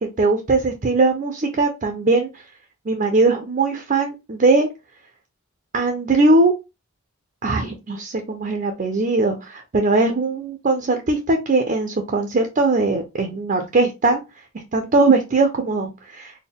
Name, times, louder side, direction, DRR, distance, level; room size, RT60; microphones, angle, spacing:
voice 1, 0.0-2.4 2.9-4.7 5.7-6.5 7.4-14.2 14.5-16.4, right 3 dB, 35° right, 5 dB, 0.5 m, -20 dB
4.2 x 2.1 x 3.5 m, 0.25 s
head